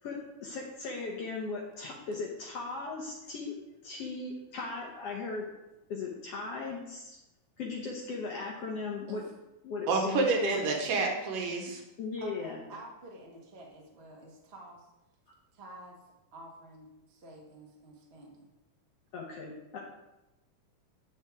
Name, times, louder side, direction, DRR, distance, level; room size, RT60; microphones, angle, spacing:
voice 1, 0.0-3.6 3.8-5.5 5.9-7.2 7.6-9.2 9.6-10.6 12.0-12.6 19.1-19.8, left 4 dB, 65° left, -2 dB, 1.6 m, -37 dB
voice 2, 9.9-11.8, right 3 dB, 85° right, 2 dB, 2.8 m, -28 dB
voice 3, 12.2-14.9 15.5-16.0 16.3-18.5, right 1 dB, 45° right, -1 dB, 0.8 m, -49 dB
8.5 x 7.8 x 3.5 m, 0.95 s
omnidirectional pair, 3.8 m